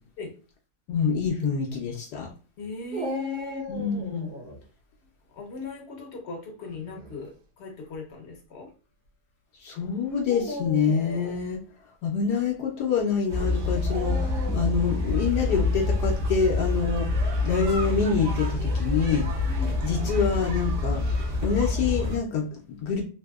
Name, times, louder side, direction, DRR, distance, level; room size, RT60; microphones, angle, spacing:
voice 1, 0.9-2.3 3.7-4.3 9.6-11.6 12.0-19.2 19.8-21.0 21.4-23.0, left 6 dB, 80° left, 0 dB, 1.3 m, -26 dB
voice 2, 2.6-3.7 5.3-7.3 7.6-8.7 19.5-19.8, left 4 dB, 55° left, 2 dB, 0.8 m, -37 dB
Dog, 2.9-4.6 6.7-7.1 7.9-8.0 10.2-11.4 13.9-14.9, equal, 90° right, 1.4 m, -37 dB
sound 1, 13.3-22.2, left 2 dB, 55° right, 1.2 m, -27 dB
3.5 x 2.7 x 2.3 m, 0.35 s
omnidirectional pair, 1.7 m